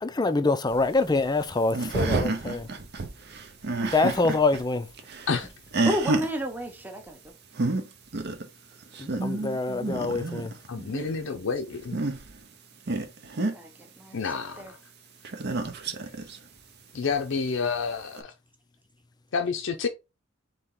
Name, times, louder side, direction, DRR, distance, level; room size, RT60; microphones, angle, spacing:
voice 1, 0.0-2.7 3.9-4.9 9.0-10.5, left 3 dB, 20° left, 0.4 m, -25 dB
sound 1, 0.7-4.6 4.9-6.3 7.3-7.4 7.5-7.8 8.1-8.5 8.8-10.7 11.7-12.4 12.9-13.5 15.2-16.4 17.1-17.2 18.2-18.3, right 2 dB, 55° right, 0.7 m, -29 dB
voice 2, 5.9-7.2 10.8-11.2 11.5-11.6 13.5-13.7 14.0-14.2 14.6-14.7, equal, 10° right, 0.8 m, -32 dB
voice 3, 10.7-12.0 14.1-14.6 16.9-18.3 19.3-19.9, left 5 dB, 70° left, 0.5 m, -29 dB
4.3 x 2.9 x 3.7 m
head